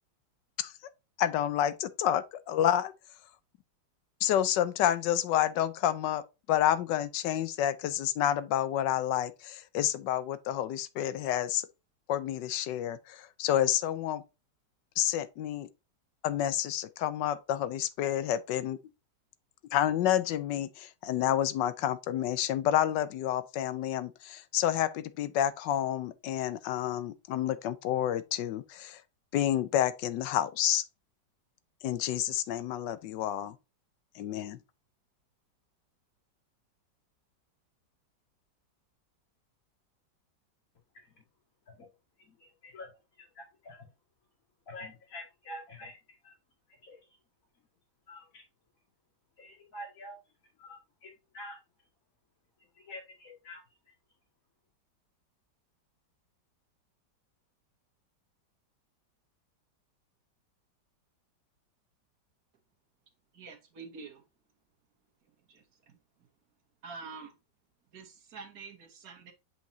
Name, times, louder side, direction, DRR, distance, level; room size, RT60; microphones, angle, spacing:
voice 1, 1.2-2.9 4.2-6.2 6.5-11.7 12.1-14.2 15.0-15.7 16.2-18.8 19.7-29.0 29.3-30.8 31.8-33.6 34.1-34.6, left 11 dB, 80° left, 1.3 m, -29 dB
voice 2, 42.2-42.9 43.2-43.9 44.7-46.3 46.7-47.2 48.1-48.4 49.4-50.2 50.6-51.6 52.7-53.9, left 1 dB, 50° left, 2.6 m, -47 dB
voice 3, 63.3-64.2 65.5-66.0 66.8-67.3 67.9-69.3, right 5 dB, 55° right, 1.8 m, -47 dB
7.8 x 5.2 x 2.7 m
omnidirectional pair, 1.9 m